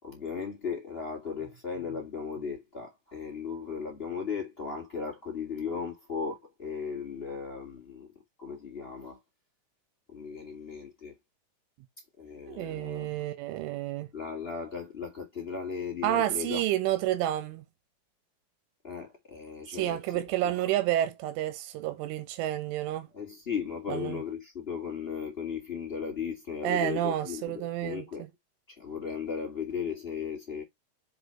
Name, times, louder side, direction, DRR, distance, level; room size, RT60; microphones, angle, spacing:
voice 1, 0.0-8.1 8.4-9.2 10.1-11.2 12.2-13.3 13.5-13.6 14.1-16.6 18.8-20.7 23.1-28.2 28.7-30.6, left 6 dB, 30° left, 1.0 m, -36 dB
voice 2, 12.5-14.1 16.0-17.7 19.7-23.1 23.9-24.2 26.6-28.1, right 13 dB, 85° right, 3.6 m, -30 dB
7.7 x 5.1 x 4.3 m
omnidirectional pair, 5.5 m